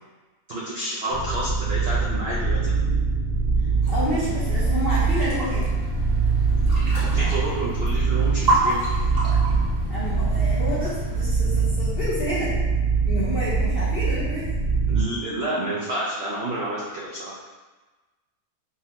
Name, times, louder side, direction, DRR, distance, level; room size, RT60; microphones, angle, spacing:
voice 1, 0.5-2.7 7.1-8.8 14.9-17.4, right 1 dB, 80° right, -6 dB, 0.5 m, -29 dB
sound 1, 1.1-15.0, right 4 dB, 85° left, 1.2 m, -23 dB
voice 2, 3.6-5.7 9.9-12.5 13.0-14.5, equal, 60° left, -9 dB, 0.6 m, -29 dB
sound 2, 3.8-11.2, right 2 dB, 35° right, 0.7 m, -30 dB
3.6 x 2.1 x 2.8 m, 1.2 s
omnidirectional pair, 1.7 m